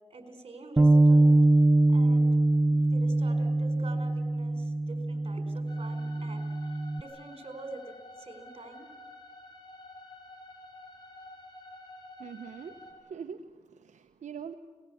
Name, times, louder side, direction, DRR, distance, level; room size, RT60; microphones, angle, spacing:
voice 1, 0.1-1.5 1.9-2.3 2.6-8.9, right 3 dB, 50° right, 7 dB, 4.7 m, -46 dB
Bass guitar, 0.8-7.0, right 2 dB, 20° right, 0.7 m, -23 dB
sound 1, 5.7-12.9, left 2 dB, 35° left, 5.7 m, -50 dB
voice 2, 12.2-14.5, right 7 dB, 80° right, 6 dB, 1.0 m, -43 dB
26.0 x 19.5 x 8.6 m, 1.4 s
cardioid pair, 55°, 12 cm